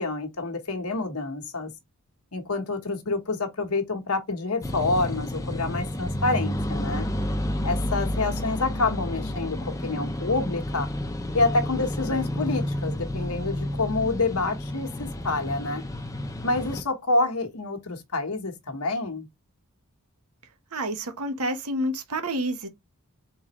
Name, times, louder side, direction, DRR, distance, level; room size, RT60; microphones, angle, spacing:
voice 1, 0.0-1.7 2.3-7.1 7.6-10.9 11.3-15.8 16.4-19.3, left 3 dB, 80° left, 1.2 m, -27 dB
sound 1, 4.6-16.8, left 1 dB, 15° left, 0.6 m, -30 dB
voice 2, 20.7-22.7, right 1 dB, 85° right, 1.1 m, -29 dB
3.9 x 3.9 x 3.0 m
head